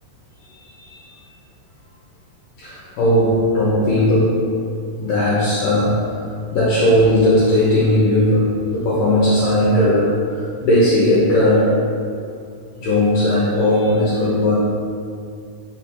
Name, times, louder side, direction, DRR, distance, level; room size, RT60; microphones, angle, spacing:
voice 1, 0.6-1.2 2.6-4.6 5.0-6.3 6.5-11.8 12.8-14.6, left 1 dB, 70° left, -7 dB, 2.2 m, -17 dB
5.1 x 5.0 x 6.1 m, 2.3 s
omnidirectional pair, 4.6 m